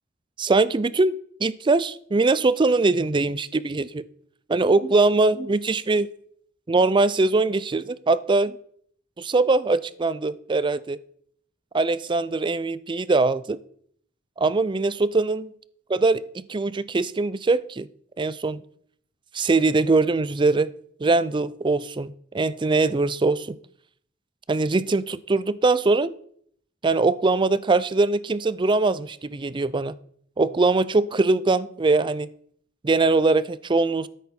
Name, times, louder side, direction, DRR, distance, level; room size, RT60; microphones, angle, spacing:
voice 1, 0.4-1.1 1.4-4.0 4.5-6.1 6.7-8.6 9.2-11.0 11.7-13.6 14.4-15.5 15.9-17.9 18.2-18.6 19.3-20.7 21.0-23.6 24.5-26.1 26.8-29.9 30.4-32.3 32.8-34.1, right 3 dB, 25° right, 0.4 m, -22 dB
13.5 x 8.2 x 4.3 m
head